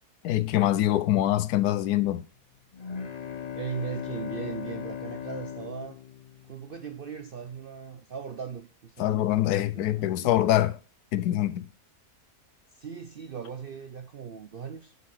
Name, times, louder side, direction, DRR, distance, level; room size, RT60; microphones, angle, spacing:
voice 1, 0.2-2.2 9.0-10.8 11.1-11.7, left 13 dB, 85° left, 1.1 m, -24 dB
sound 1, 2.7-6.8, left 8 dB, 45° left, 0.5 m, -37 dB
voice 2, 3.6-6.0 6.5-9.3 9.7-10.6 12.7-14.9, right 7 dB, 60° right, 0.6 m, -39 dB
6.8 x 6.5 x 5.2 m
omnidirectional pair, 1.6 m